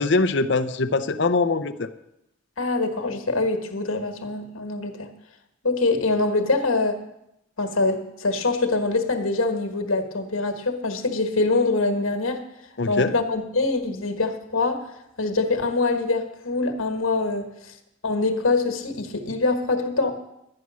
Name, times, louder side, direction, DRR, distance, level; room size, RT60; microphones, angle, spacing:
voice 1, 0.0-1.9 12.8-13.1, left 3 dB, 55° left, 12 dB, 0.6 m, -22 dB
voice 2, 2.6-5.1 5.6-7.0 7.6-12.4 12.9-14.8 15.2-17.5 18.0-20.1, left 3 dB, 85° left, 6 dB, 1.4 m, -24 dB
11.5 x 9.6 x 6.3 m, 0.84 s
head